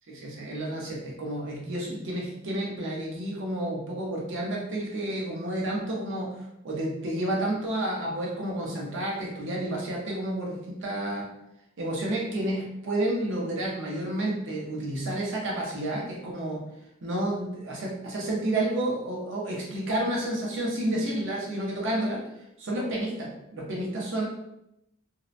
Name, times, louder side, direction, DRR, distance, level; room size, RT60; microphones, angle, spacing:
voice 1, 0.1-6.3 6.6-11.3 11.8-16.6 17.0-22.2 22.6-24.3, right 1 dB, 60° right, -3 dB, 0.6 m, -30 dB
2.7 x 2.0 x 2.4 m, 0.84 s
head